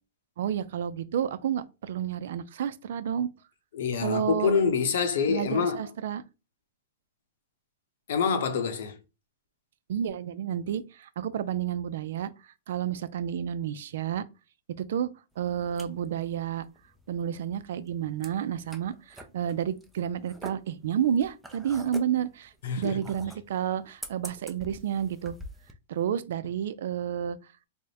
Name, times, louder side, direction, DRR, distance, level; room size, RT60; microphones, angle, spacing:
voice 1, 0.4-3.3 4.0-4.5 5.3-6.2 9.9-12.3 12.7-14.2 14.8-15.1 15.4-16.7 17.1-25.4 25.9-27.4, right 9 dB, 65° right, 0.4 m, -30 dB
voice 2, 3.7-5.9 8.1-9.0 22.6-23.0, left 6 dB, 65° left, 0.8 m, -26 dB
sound 1, 15.3-25.7, equal, 5° right, 0.4 m, -47 dB
3.5 x 2.1 x 4.1 m
hypercardioid pair, 160°, 0 cm